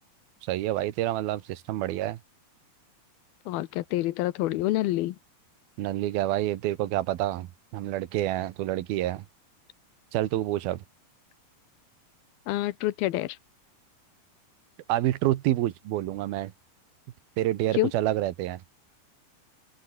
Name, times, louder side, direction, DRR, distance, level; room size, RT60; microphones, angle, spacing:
voice 1, 0.5-2.2 5.8-9.2 10.1-10.8 14.9-16.5 17.4-18.6, right 14 dB, 85° right, 3.0 m, -28 dB
voice 2, 3.5-5.2 12.5-13.4 17.7-17.9, left 16 dB, 85° left, 2.9 m, -27 dB
open air
omnidirectional pair, 4.2 m